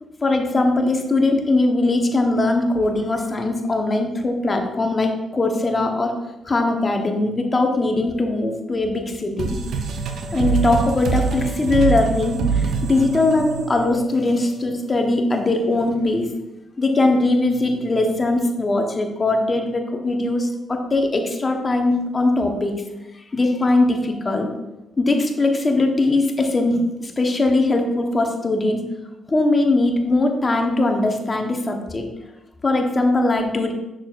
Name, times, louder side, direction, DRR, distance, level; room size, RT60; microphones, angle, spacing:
voice 1, 0.2-6.2 6.5-9.6 10.3-16.3 16.8-22.8 23.3-24.5 25.0-28.8 29.3-32.1 32.6-33.7, left 2 dB, 35° left, 4 dB, 1.0 m, -20 dB
sound 1, 9.4-14.7, right 5 dB, 75° right, 0.7 m, -25 dB
6.4 x 6.2 x 2.4 m, 1.0 s
cardioid pair, 75°, 0 cm